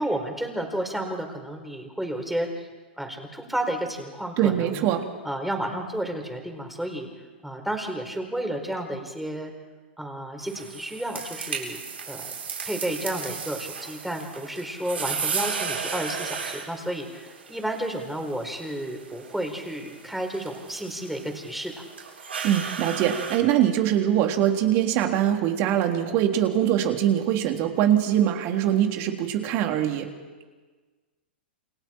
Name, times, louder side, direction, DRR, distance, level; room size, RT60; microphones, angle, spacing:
voice 1, 0.0-2.7 3.0-4.9 5.2-7.1 7.4-9.5 10.0-11.8 12.1-12.3 12.6-21.7, right 1 dB, 5° right, 3 dB, 4.7 m, -31 dB
voice 2, 4.4-5.1 22.4-30.1, right 11 dB, 45° right, 3 dB, 3.4 m, -23 dB
sound 1, 10.4-23.4, right 6 dB, 85° right, 7.4 m, -35 dB
29.0 x 27.0 x 4.6 m, 1.4 s
hypercardioid pair, 115°, 6 cm